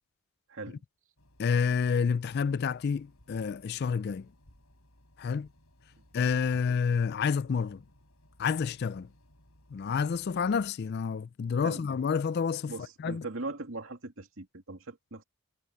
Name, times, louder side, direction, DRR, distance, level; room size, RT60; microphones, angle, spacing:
voice 1, 0.5-0.8 11.6-11.8 12.7-15.2, right 3 dB, 65° right, 2.4 m, -40 dB
sound 1, 1.2-10.7, left 1 dB, 80° left, 6.7 m, -62 dB
voice 2, 1.4-4.3 5.2-5.5 6.1-7.8 8.4-9.1 9.7-12.7 13.0-13.2, left 6 dB, 45° left, 0.3 m, -29 dB
head